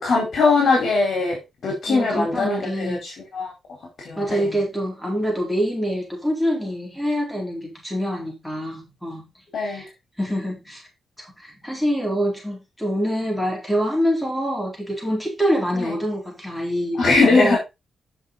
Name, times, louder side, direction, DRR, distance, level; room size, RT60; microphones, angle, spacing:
voice 1, 0.0-1.4 1.6-3.5 4.0-4.5 9.5-9.8 15.8-15.9 17.0-17.6, left 3 dB, 60° left, 4.5 m, -20 dB
voice 2, 1.9-3.1 4.2-9.2 9.6-9.9 10.2-10.8 11.2-17.6, equal, ahead, 4.3 m, -25 dB
9.9 x 6.4 x 4.0 m
wide cardioid pair, 130°, 0 cm